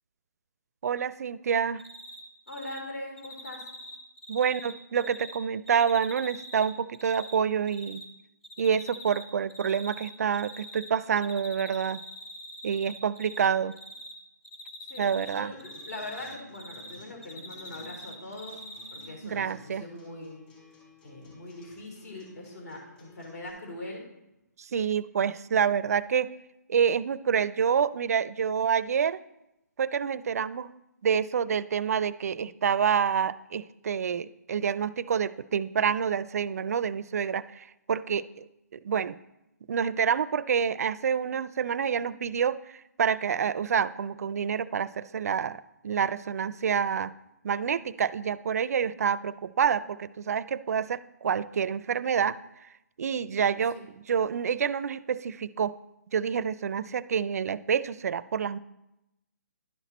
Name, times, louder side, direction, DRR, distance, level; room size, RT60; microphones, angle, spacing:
voice 1, 0.8-1.8 4.3-8.0 8.6-12.0 12.6-13.7 15.0-15.5 19.2-19.8 24.6-26.3 26.7-29.2 29.8-30.7 31.0-38.3 38.7-39.2 39.7-47.1 47.4-52.4 53.0-55.8 56.1-58.6, right 7 dB, 55° right, 17 dB, 0.4 m, -27 dB
Cricket, 1.8-2.2 2.5-2.8 3.2-5.4 5.7-7.3 7.7-8.0 8.4-9.2 9.5-10.9 11.2-13.5 13.7-14.1 14.4-17.0 17.2-19.1, equal, ahead, 0.8 m, -44 dB
voice 2, 2.5-3.6 14.8-18.6 18.9-20.4 21.0-24.0 53.7-53.9, left 2 dB, 60° left, 0 dB, 3.7 m, -41 dB
Acoustic guitar, 15.5-23.5, left 2 dB, 30° left, 3.3 m, -54 dB
11.0 x 6.0 x 4.1 m, 0.89 s
hypercardioid pair, 155°, 10 cm